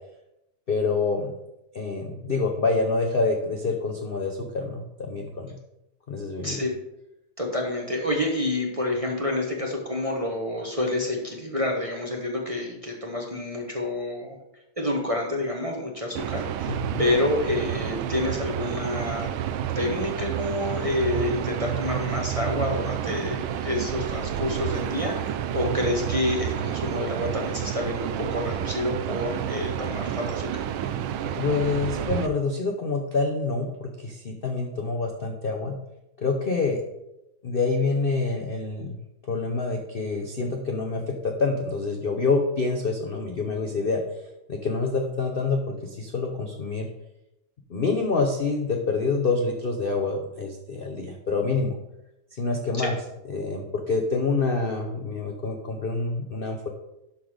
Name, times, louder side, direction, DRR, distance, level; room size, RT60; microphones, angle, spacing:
voice 1, 0.7-1.3 1.7-5.5 6.1-6.6 16.7-17.0 31.4-35.8 36.2-36.8 37.4-39.0 39.3-44.0 44.5-46.9 47.7-51.8 52.4-52.9 53.3-56.7, left 3 dB, 65° left, 2 dB, 0.5 m, -27 dB
voice 2, 6.4-6.7 7.4-14.4 14.8-19.3 19.7-30.6 52.8-52.9, left 1 dB, 25° right, 0 dB, 0.9 m, -28 dB
sound 1, 16.2-32.3, right 10 dB, 85° right, 1.5 m, -30 dB
12.0 x 4.0 x 5.0 m, 0.89 s
omnidirectional pair, 2.2 m